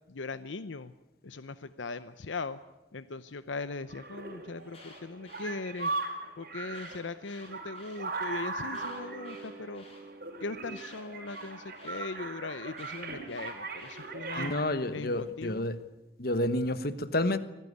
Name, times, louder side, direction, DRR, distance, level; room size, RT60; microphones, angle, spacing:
voice 1, 0.1-0.9 1.2-2.6 2.9-5.9 6.4-9.8 10.4-14.5 14.9-15.6, left 3 dB, 90° left, 13 dB, 0.8 m, -39 dB
sound 1, 3.9-14.6, right 3 dB, 50° right, 4.8 m, -39 dB
Alarm, 4.5-6.0 6.7-8.0 8.7-10.0 10.7-12.0 12.7-14.0, left 3 dB, 35° left, 5.8 m, -54 dB
sound 2, 8.5-15.0, right 3 dB, 15° right, 5.4 m, -52 dB
voice 2, 14.4-15.8 16.2-17.4, left 1 dB, 55° left, 13 dB, 1.2 m, -29 dB
25.5 x 18.0 x 9.6 m, 1.0 s
head